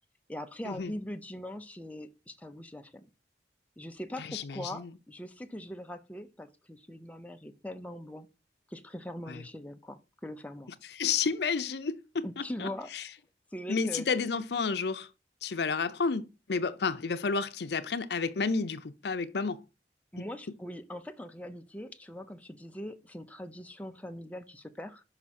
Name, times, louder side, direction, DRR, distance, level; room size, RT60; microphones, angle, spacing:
voice 1, 0.3-3.1 3.8-8.3 8.7-10.7 12.2-12.9 13.5-14.1 20.1-25.0, left 1 dB, 10° left, 0.6 m, -41 dB
voice 2, 4.2-4.9 9.3-9.4 10.8-13.1 13.7-15.1 15.4-19.6 20.2-20.3, left 5 dB, 70° left, 0.6 m, -31 dB
6.0 x 5.4 x 4.2 m
head